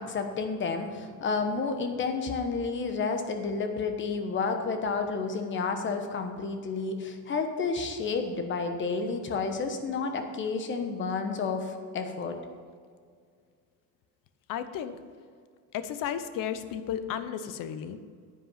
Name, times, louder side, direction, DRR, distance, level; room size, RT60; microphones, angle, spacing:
voice 1, 0.0-12.4, left 4 dB, 35° left, 6 dB, 1.1 m, -31 dB
voice 2, 14.5-15.0 15.7-18.0, left 9 dB, 70° left, 11 dB, 0.8 m, -33 dB
9.9 x 8.7 x 5.7 m, 2.1 s
cardioid pair, 175°, 34 cm